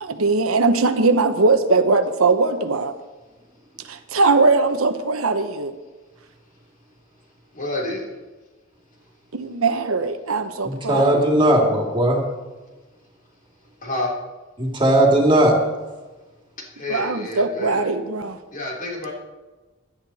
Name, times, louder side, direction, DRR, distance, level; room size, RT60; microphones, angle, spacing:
voice 1, 0.0-3.0 3.8-5.7 9.3-11.2 16.9-18.4, right 3 dB, 80° right, 8 dB, 1.0 m, -20 dB
voice 2, 7.5-8.0 13.8-14.1 16.8-17.8 18.5-19.1, left 2 dB, 40° left, -1 dB, 3.4 m, -28 dB
voice 3, 10.6-12.2 14.6-15.5, right 1 dB, 25° right, 0 dB, 2.5 m, -17 dB
16.5 x 11.5 x 4.2 m, 1.2 s
head